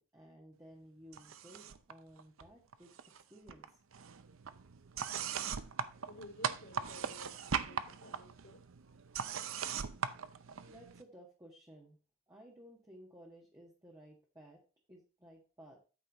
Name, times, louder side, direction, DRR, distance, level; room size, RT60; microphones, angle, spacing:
voice 1, 0.0-2.9 3.3-3.6 10.6-12.0 12.3-14.6 14.9-15.8, equal, 15° right, -3 dB, 1.7 m, -56 dB
sound 1, 1.1-1.9 2.2-3.2 3.5-11.0, right 7 dB, 70° right, 0.6 m, -40 dB
voice 2, 5.3-8.6, left 1 dB, 60° left, 1 dB, 3.2 m, -55 dB
9.3 x 8.1 x 3.0 m, 0.34 s
head